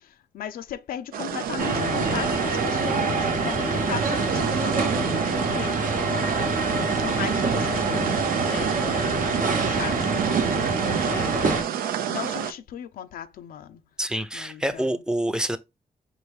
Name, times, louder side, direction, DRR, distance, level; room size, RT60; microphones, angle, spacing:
voice 1, 0.3-5.9 6.6-9.2 9.6-11.5 12.1-13.8 14.3-14.6, left 9 dB, 80° left, 0.4 m, -37 dB
sound 1, 1.1-12.5, right 9 dB, 85° right, 0.4 m, -30 dB
sound 2, 1.6-11.6, right 3 dB, 65° right, 0.9 m, -25 dB
voice 2, 14.0-15.6, right 1 dB, 5° right, 0.6 m, -27 dB
4.7 x 2.6 x 3.4 m
cardioid pair, 60°, 15 cm